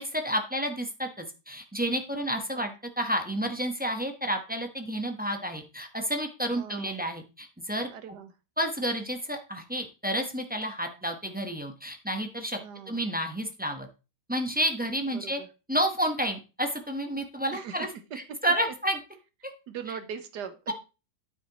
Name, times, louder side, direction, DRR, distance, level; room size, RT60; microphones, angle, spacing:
voice 1, 0.0-2.7 3.0-7.9 8.6-12.6 12.9-13.9 14.3-15.4 15.7-17.9 18.4-19.0 19.4-19.5, equal, 10° right, 4 dB, 0.6 m, -30 dB
voice 2, 2.3-2.7 6.5-7.0 7.9-8.3 12.6-13.0 15.1-15.5 17.5-17.9 18.3-18.4 18.6-18.7 19.7-20.7, right 7 dB, 65° right, 8 dB, 1.5 m, -40 dB
9.0 x 8.3 x 3.0 m, 0.31 s
omnidirectional pair, 2.1 m